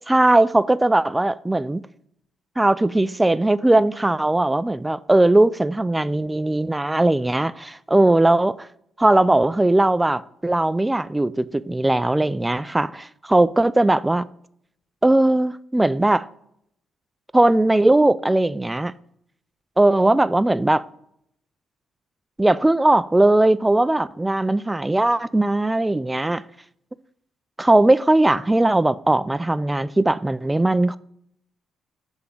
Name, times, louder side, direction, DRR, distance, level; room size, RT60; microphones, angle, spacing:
voice 1, 0.1-1.8 2.6-8.7 9.0-14.2 15.0-16.2 17.3-18.9 19.8-20.8 22.4-26.4 27.6-31.0, right 2 dB, 10° right, 0.3 m, -19 dB
6.9 x 3.5 x 5.5 m
cardioid pair, 90°, 0 cm